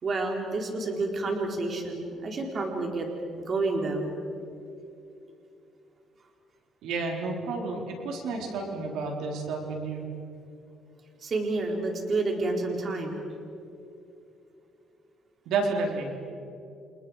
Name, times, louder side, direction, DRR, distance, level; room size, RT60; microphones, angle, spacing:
voice 1, 0.0-3.1 3.5-4.1 11.2-13.1, right 3 dB, 40° right, 1 dB, 3.8 m, -29 dB
voice 2, 6.8-10.1 15.5-16.1, right 3 dB, 85° right, 1 dB, 4.1 m, -31 dB
29.5 x 29.0 x 5.0 m, 2.7 s
cardioid pair, 125°, 0 cm